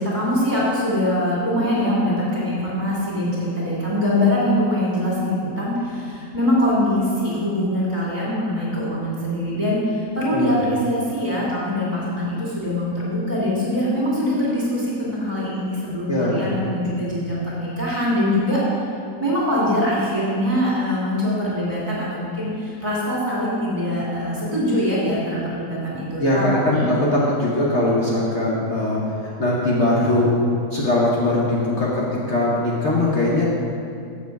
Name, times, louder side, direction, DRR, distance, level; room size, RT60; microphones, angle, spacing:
voice 1, 0.0-18.6 19.2-26.9, left 1 dB, 25° right, -7 dB, 2.3 m, -23 dB
voice 2, 16.1-16.9 26.2-33.4, left 1 dB, 50° left, -6 dB, 1.3 m, -21 dB
7.5 x 6.9 x 4.6 m, 2.4 s
omnidirectional pair, 1.7 m